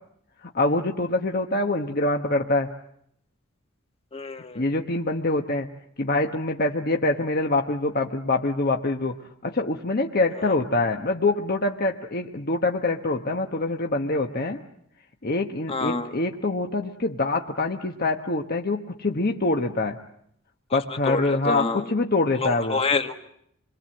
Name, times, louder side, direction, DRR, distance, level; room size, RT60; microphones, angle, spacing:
voice 1, 0.5-2.7 4.5-5.7 6.0-9.2 9.4-14.6 15.2-20.0 20.7-22.8, left 2 dB, 50° left, 3 dB, 1.2 m, -25 dB
voice 2, 4.1-4.6 10.4-10.5 15.7-16.2 21.0-21.9 22.3-23.1, left 3 dB, 30° left, 6 dB, 1.6 m, -27 dB
27.5 x 22.5 x 7.7 m, 0.71 s
head